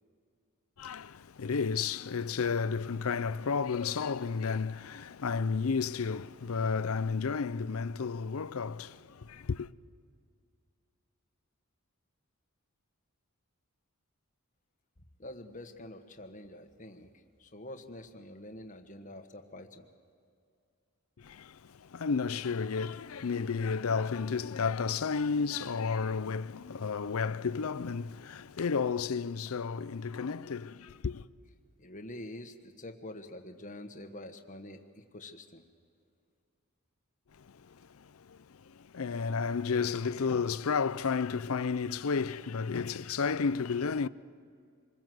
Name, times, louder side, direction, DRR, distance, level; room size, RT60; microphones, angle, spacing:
voice 1, 0.8-9.7 21.2-31.2 37.4-44.1, left 5 dB, 75° left, 0.6 m, -32 dB
voice 2, 15.2-17.1 17.4-19.9 31.8-35.6, left 1 dB, 35° left, 1.5 m, -46 dB
26.5 x 21.5 x 7.8 m
head